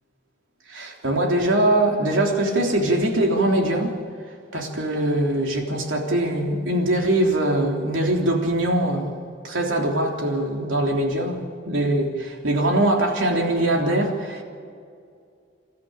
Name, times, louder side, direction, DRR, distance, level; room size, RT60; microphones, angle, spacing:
voice 1, 0.7-3.9 4.5-9.1 9.4-14.4, right 1 dB, 85° right, 1 dB, 3.5 m, -22 dB
27.5 x 13.0 x 8.8 m, 2.3 s
head